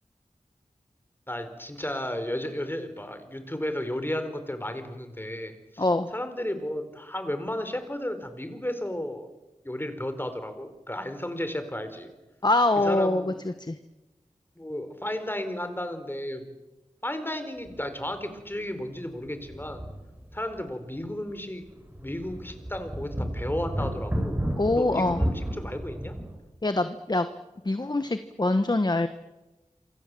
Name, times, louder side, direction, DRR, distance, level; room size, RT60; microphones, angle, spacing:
voice 1, 1.3-5.8 6.1-9.3 9.6-12.1 12.8-13.4 14.6-16.5 17.0-19.8 20.3-21.7 22.0-24.4 24.7-26.2, left 1 dB, 15° left, 8 dB, 4.3 m, -33 dB
voice 2, 5.8-6.1 12.4-13.8 24.6-25.2 26.6-27.3 27.6-29.1, left 2 dB, 35° left, 10 dB, 1.3 m, -24 dB
sound 1, 17.7-17.8 18.2-18.3 19.2-20.6 21.0-21.1 21.6-26.4, equal, 15° right, 6.8 m, -32 dB
27.5 x 24.5 x 7.7 m, 1.1 s
wide cardioid pair, 70°, 13 cm